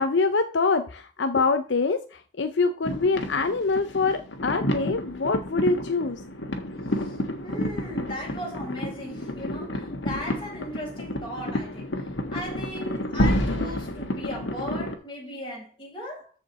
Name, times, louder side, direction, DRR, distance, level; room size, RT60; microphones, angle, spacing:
voice 1, 0.0-6.2, left 3 dB, 75° left, 0.7 m, -25 dB
sound 1, 2.8-14.9, left 1 dB, 90° left, 1.6 m, -30 dB
voice 2, 6.8-16.3, left 1 dB, 30° left, 5.0 m, -37 dB
14.0 x 5.1 x 4.2 m
head